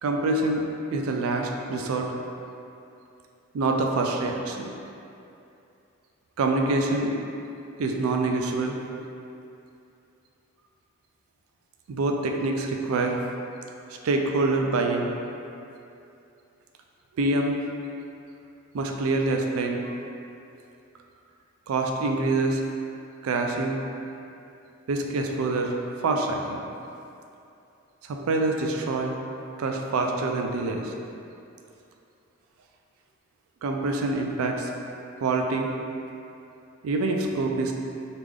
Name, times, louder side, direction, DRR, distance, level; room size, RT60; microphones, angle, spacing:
voice 1, 0.0-2.1 3.5-4.7 6.4-7.1 7.8-8.8 11.9-13.2 14.0-15.1 17.2-17.6 18.7-19.9 21.7-22.6 23.2-23.8 24.9-25.8 26.0-26.6 28.1-29.1 29.6-30.9 33.6-34.7 35.2-35.7 36.8-37.7, right 2 dB, 80° right, 2 dB, 0.4 m, -25 dB
3.2 x 2.4 x 3.5 m, 2.7 s
head